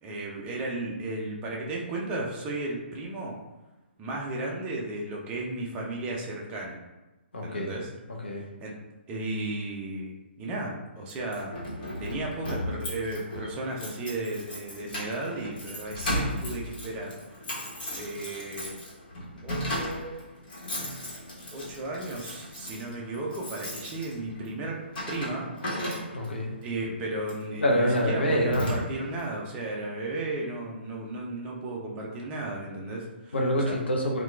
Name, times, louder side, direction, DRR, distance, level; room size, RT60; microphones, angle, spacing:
voice 1, 0.0-3.4 4.0-6.8 7.4-7.9 8.6-8.7 9.1-10.1 10.4-11.5 12.0-17.2 18.0-18.8 19.4-20.2 21.5-24.8 25.1-25.5 26.6-33.3 33.6-33.8, right 2 dB, 20° right, -2 dB, 0.4 m, -34 dB
voice 2, 7.3-7.7 8.2-8.4 26.1-26.6 27.6-28.8 33.3-34.2, equal, 70° left, -1 dB, 0.6 m, -26 dB
Keys jangling, 11.1-26.4 27.2-27.5 27.9-28.0 28.3-29.2, left 1 dB, 50° left, 1.0 m, -36 dB
2.8 x 2.2 x 2.3 m, 1.1 s
figure-of-eight pair, 130°, 6 cm